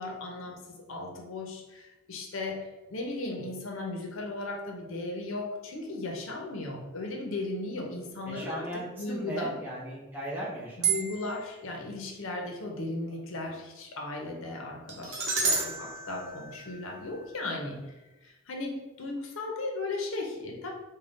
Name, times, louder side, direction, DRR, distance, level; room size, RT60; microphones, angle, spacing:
voice 1, 0.0-8.6 9.0-9.6 10.8-17.8 18.2-20.7, left 2 dB, 75° left, 1 dB, 0.7 m, -36 dB
voice 2, 8.3-11.0 12.9-13.2 17.4-17.6, right 1 dB, 10° right, -7 dB, 0.8 m, -38 dB
sound 1, 10.8-11.5 14.9-17.1, right 5 dB, 65° right, 0.8 m, -31 dB
3.8 x 2.2 x 3.5 m, 1.1 s
head